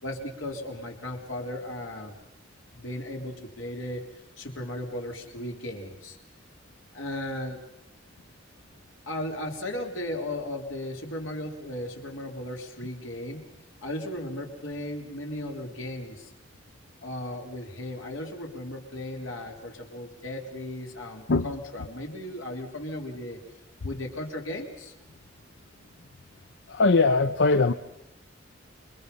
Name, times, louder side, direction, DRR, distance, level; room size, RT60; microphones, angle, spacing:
voice 1, 0.0-2.2 2.7-4.0 4.4-6.2 6.9-7.6 9.1-13.4 13.8-16.3 17.0-23.4 23.8-24.9, left 1 dB, 90° left, 2 dB, 4.0 m, -36 dB
voice 2, 26.7-27.7, left 3 dB, 65° left, 11 dB, 0.7 m, -21 dB
28.5 x 23.0 x 5.6 m, 0.87 s
head